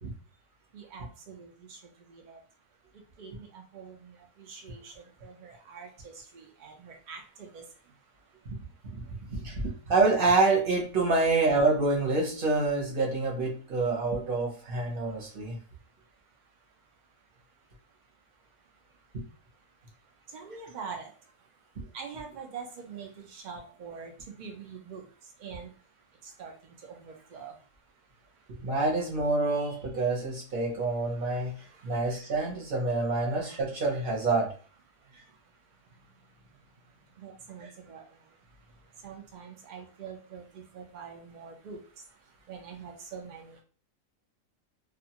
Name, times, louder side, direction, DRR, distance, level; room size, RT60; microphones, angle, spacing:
voice 1, 0.7-1.8 2.1-2.4 3.2-7.6 20.3-21.1 21.9-25.0 25.4-25.7 26.2-27.6 31.7-31.8 37.2-38.0 39.0-41.8 42.5-43.6, right 6 dB, 75° right, 1 dB, 0.4 m, -44 dB
voice 2, 9.3-15.6 19.1-19.2 28.6-31.5 31.8-34.5, right 3 dB, 45° right, -1 dB, 0.9 m, -27 dB
2.4 x 2.3 x 2.8 m, 0.39 s
omnidirectional pair, 1.5 m